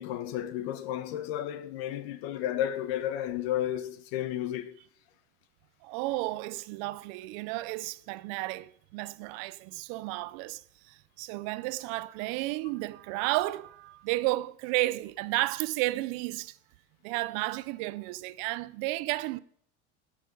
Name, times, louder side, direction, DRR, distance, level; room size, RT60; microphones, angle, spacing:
voice 1, 0.0-4.7, left 11 dB, 60° left, 1.3 m, -32 dB
voice 2, 5.8-16.6 17.0-19.4, right 19 dB, 50° right, 0.6 m, -32 dB
17.0 x 6.8 x 5.3 m
supercardioid pair, 140°, 34 cm